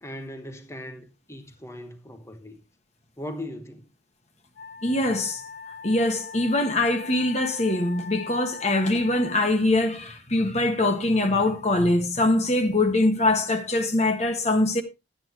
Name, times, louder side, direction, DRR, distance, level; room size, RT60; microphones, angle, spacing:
voice 1, 0.0-2.6 3.2-3.8, left 1 dB, 15° left, 1.1 m, -39 dB
Wind instrument woodwind instrument, 4.6-9.4, left 5 dB, 85° left, 2.6 m, -41 dB
voice 2, 4.8-5.4 5.8-14.8, left 2 dB, 35° left, 1.5 m, -23 dB
12.0 x 8.9 x 3.1 m
head